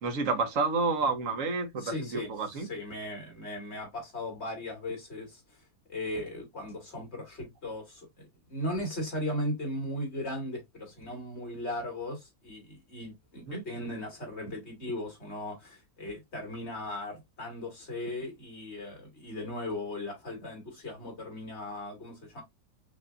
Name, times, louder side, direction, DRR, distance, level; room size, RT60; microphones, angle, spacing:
voice 1, 0.0-2.7 13.5-13.6, right 4 dB, 60° right, 1.3 m, -30 dB
voice 2, 1.8-5.4 5.9-22.4, left 1 dB, 45° left, 2.4 m, -37 dB
5.1 x 2.8 x 2.5 m
omnidirectional pair, 1.6 m